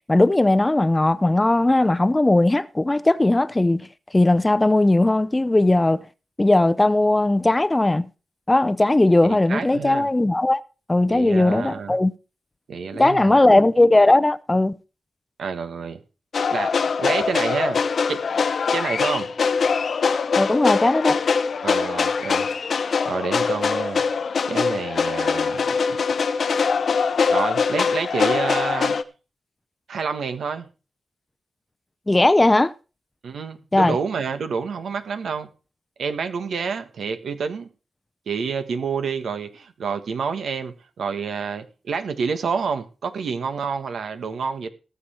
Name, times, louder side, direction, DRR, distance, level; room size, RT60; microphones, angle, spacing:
voice 1, 0.1-3.9 4.1-6.0 6.4-8.1 8.5-10.6 10.9-12.1 13.0-14.8 20.4-21.2 32.1-32.7 33.7-34.0, left 2 dB, 20° left, 0.6 m, -18 dB
voice 2, 9.2-10.1 11.1-12.0 12.7-13.4 15.4-16.0 16.5-16.7 17.0-17.8 18.1-18.2 18.7-19.3 21.6-22.5 23.0-24.0 24.5-25.6 25.9-26.0 27.3-29.0 29.9-30.7 33.2-35.5 36.0-37.7 38.3-44.7, right 5 dB, 80° right, 1.4 m, -28 dB
sound 1, 16.3-29.0, left 5 dB, 65° left, 0.8 m, -22 dB
18.5 x 7.0 x 4.4 m
cardioid pair, 70°, 0 cm